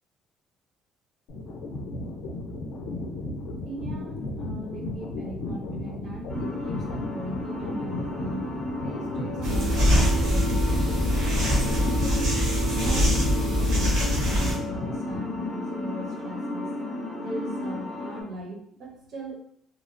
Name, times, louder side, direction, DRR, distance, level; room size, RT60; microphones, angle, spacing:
sound 1, 1.3-15.5, left 1 dB, 85° left, 0.4 m, -35 dB
voice 1, 3.6-11.1 11.5-12.3 12.7-16.7 17.2-19.4, right 1 dB, 45° right, 0 dB, 0.6 m, -39 dB
sound 2, 6.3-18.2, left 2 dB, 10° left, 0.4 m, -34 dB
sound 3, 9.4-14.6, equal, 75° right, 0.9 m, -23 dB
2.8 x 2.0 x 2.5 m, 0.69 s
cardioid pair, 175°, 0 cm